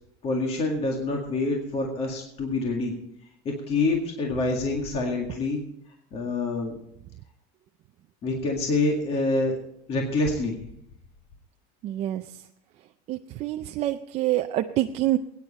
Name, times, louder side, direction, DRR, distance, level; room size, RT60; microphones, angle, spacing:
voice 1, 0.2-2.9 3.4-5.6 6.1-6.8 8.2-9.6 9.9-10.6, left 2 dB, 30° left, 1 dB, 2.0 m, -26 dB
voice 2, 11.8-12.4 13.1-15.2, right 14 dB, 30° right, 6 dB, 0.4 m, -27 dB
21.0 x 9.7 x 4.3 m, 0.76 s
cardioid pair, 170°, 20 cm